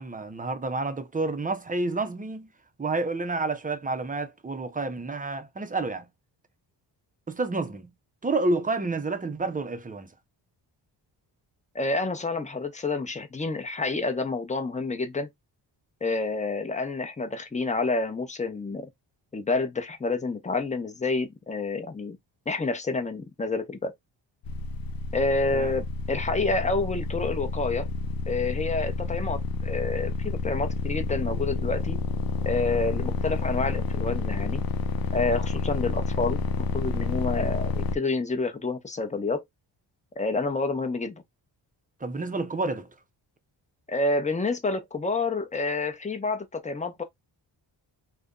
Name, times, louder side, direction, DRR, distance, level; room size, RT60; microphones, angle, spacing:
voice 1, 0.0-2.5 2.8-6.1 7.3-7.9 8.2-10.1 25.5-25.7 42.0-42.9, right 3 dB, 20° right, 0.6 m, -29 dB
voice 2, 11.7-15.3 16.0-18.9 19.3-22.2 22.5-23.9 25.1-27.9 28.3-32.0 32.4-34.6 35.1-39.4 40.2-41.2 43.9-47.0, left 3 dB, 15° left, 0.8 m, -28 dB
sound 1, 24.4-38.0, left 4 dB, 55° left, 0.6 m, -29 dB
2.6 x 2.2 x 3.7 m
cardioid pair, 75°, 44 cm